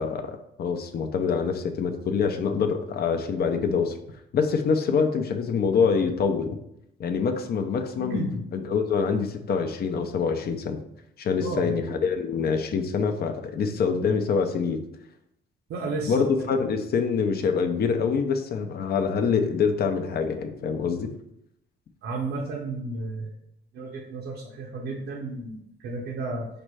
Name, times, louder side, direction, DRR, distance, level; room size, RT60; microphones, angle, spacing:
voice 1, 0.0-4.0 4.3-6.5 7.0-8.3 8.5-10.8 11.2-14.8 16.1-21.1, left 5 dB, 50° left, 6 dB, 0.6 m, -25 dB
voice 2, 8.0-8.4 11.4-11.8 15.7-16.1 16.5-16.6 22.0-23.3 23.7-26.5, right 2 dB, 80° right, -2 dB, 0.8 m, -32 dB
5.0 x 2.1 x 4.7 m, 0.77 s
cardioid pair, 90°, 20 cm